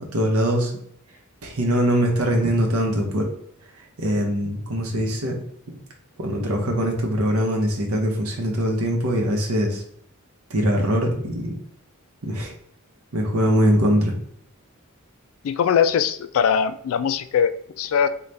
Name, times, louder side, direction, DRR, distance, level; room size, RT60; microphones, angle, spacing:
voice 1, 0.1-0.7 1.4-3.3 4.0-5.4 6.2-9.8 10.5-11.5 12.2-12.5 13.1-14.1, equal, 80° right, 2 dB, 0.8 m, -22 dB
voice 2, 15.4-18.1, left 7 dB, 65° left, 12 dB, 0.3 m, -21 dB
4.0 x 2.3 x 3.3 m, 0.68 s
head